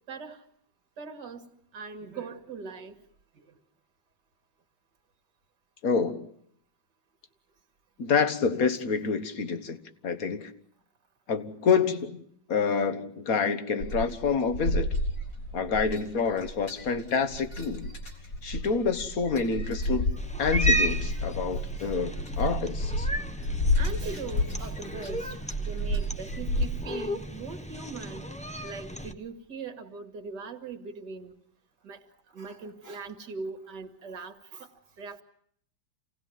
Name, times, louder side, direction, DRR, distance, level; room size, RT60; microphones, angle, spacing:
voice 1, 0.1-0.4 1.0-1.5 1.7-3.0 21.8-21.9 23.1-23.2 23.8-28.3 28.6-31.3 31.8-32.0 32.3-34.7 35.0-35.2, right 4 dB, 70° right, 2.5 m, -40 dB
voice 2, 5.8-6.3 8.0-10.5 11.3-12.2 12.5-14.9 15.5-17.9 18.4-20.1 20.4-23.1, left 5 dB, 50° left, 1.8 m, -27 dB
sound 1, 13.8-26.7, left 1 dB, 75° left, 5.3 m, -31 dB
Cat, 20.2-29.1, right 1 dB, 5° left, 0.8 m, -34 dB
28.0 x 18.0 x 9.3 m
omnidirectional pair, 2.0 m